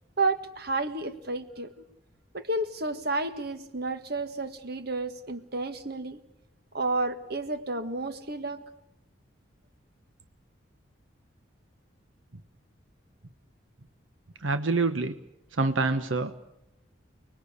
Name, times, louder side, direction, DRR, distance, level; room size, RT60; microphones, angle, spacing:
voice 1, 0.2-1.7 2.3-6.2 6.7-8.6, right 2 dB, 55° right, 10 dB, 1.7 m, -31 dB
voice 2, 14.4-15.2 15.6-16.4, right 3 dB, 80° right, 10 dB, 1.2 m, -26 dB
29.5 x 20.5 x 8.3 m, 0.85 s
head